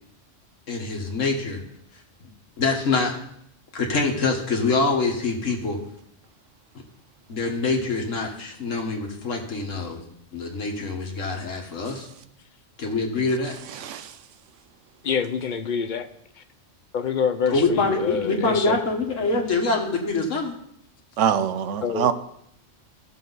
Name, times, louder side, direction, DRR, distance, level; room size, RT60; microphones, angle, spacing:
voice 1, 0.7-1.6 2.6-3.1 3.7-5.8 7.3-10.0 10.3-12.1 12.8-13.5 17.5-20.5, left 3 dB, 80° left, 2 dB, 1.8 m, -25 dB
voice 2, 13.8-14.1 21.2-22.1, right 8 dB, 75° right, 12 dB, 1.0 m, -23 dB
voice 3, 15.0-16.1 16.4-16.5 16.9-18.8 21.8-22.1, left 6 dB, 50° left, 10 dB, 0.7 m, -26 dB
15.0 x 6.8 x 4.0 m, 0.73 s
omnidirectional pair, 1.3 m